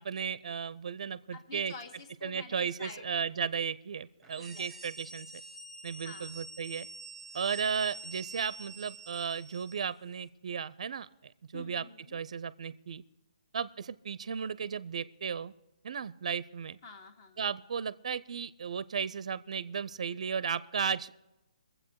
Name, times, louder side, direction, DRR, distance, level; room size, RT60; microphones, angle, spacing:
voice 1, 0.0-1.7 2.2-5.3 5.8-6.9 7.3-13.0 13.5-15.5 15.8-16.8 17.4-21.1, right 6 dB, 60° right, 18 dB, 0.5 m, -35 dB
voice 2, 1.3-3.0 4.4-4.7 6.0-6.4 11.5-12.1 16.8-17.4, left 4 dB, 35° left, 6 dB, 1.7 m, -48 dB
sound 1, 4.2-9.9, right 2 dB, ahead, 1.1 m, -47 dB
22.5 x 7.7 x 4.6 m, 0.95 s
hypercardioid pair, 150°, 4 cm